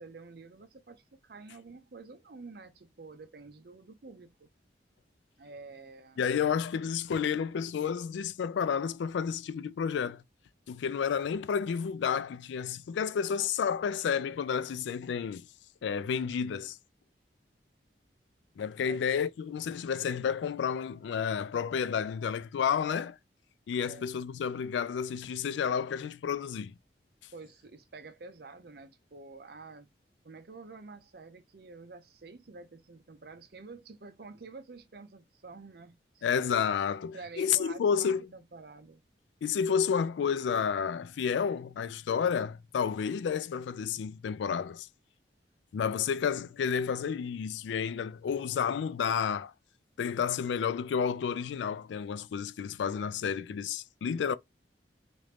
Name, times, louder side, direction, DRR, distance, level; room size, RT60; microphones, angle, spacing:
voice 1, 0.0-4.5 5.4-6.5 7.1-7.4 18.8-19.0 23.8-24.1 27.3-29.9 30.2-36.4 37.1-39.0, right 3 dB, 55° right, 0.5 m, -49 dB
voice 2, 6.2-10.2 10.7-15.5 15.8-16.8 18.6-23.2 23.7-26.7 36.2-38.3 39.4-44.9 45.7-49.5 50.0-54.4, left 7 dB, 80° left, 0.3 m, -31 dB
3.0 x 2.5 x 3.2 m
head